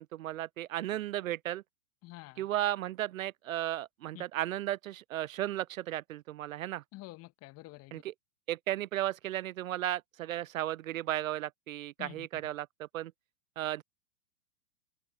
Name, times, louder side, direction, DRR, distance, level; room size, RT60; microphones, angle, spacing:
voice 1, 0.0-1.6 2.4-6.8 7.9-8.1 8.5-13.1 13.6-13.8, right 13 dB, 60° right, 0.6 m, -35 dB
voice 2, 2.0-2.5 4.1-4.2 6.9-8.0 12.0-12.4, left 20 dB, 30° left, 1.9 m, -48 dB
hypercardioid pair, 110°, 46 cm